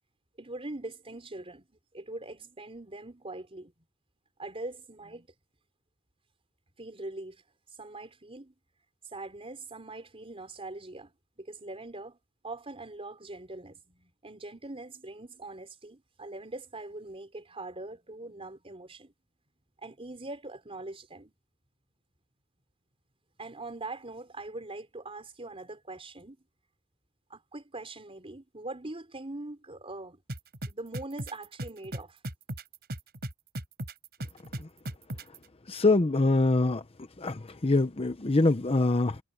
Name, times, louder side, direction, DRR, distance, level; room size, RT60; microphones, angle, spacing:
voice 1, 0.4-3.7 4.4-5.3 6.8-7.4 7.8-8.5 9.0-12.2 12.4-19.1 19.8-21.3 23.4-26.4 27.3-30.2 30.7-32.2, right 2 dB, 25° right, 4.5 m, -42 dB
sound 1, 30.3-35.4, right 1 dB, 50° right, 5.1 m, -36 dB
voice 2, 35.7-36.8 37.2-39.2, left 2 dB, 30° left, 0.8 m, -24 dB
head